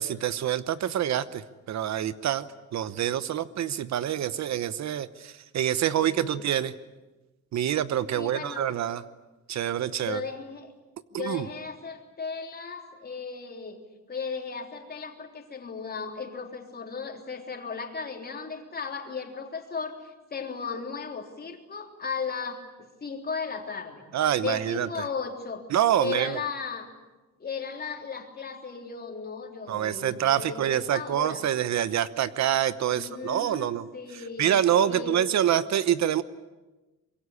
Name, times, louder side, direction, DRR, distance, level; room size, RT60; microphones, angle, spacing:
voice 1, 0.0-1.4 1.7-6.7 7.5-9.0 9.5-10.2 11.1-11.5 24.1-24.9 25.7-26.4 29.7-33.9 34.4-36.2, right 10 dB, 60° right, 15 dB, 1.0 m, -26 dB
voice 2, 6.0-6.5 8.2-8.8 10.0-10.7 11.1-13.8 14.1-24.1 24.4-25.6 26.0-26.9 27.4-31.4 32.9-35.2, left 5 dB, 30° left, 4 dB, 3.6 m, -36 dB
25.5 x 22.5 x 9.9 m, 1.1 s
cardioid pair, 155°, 31 cm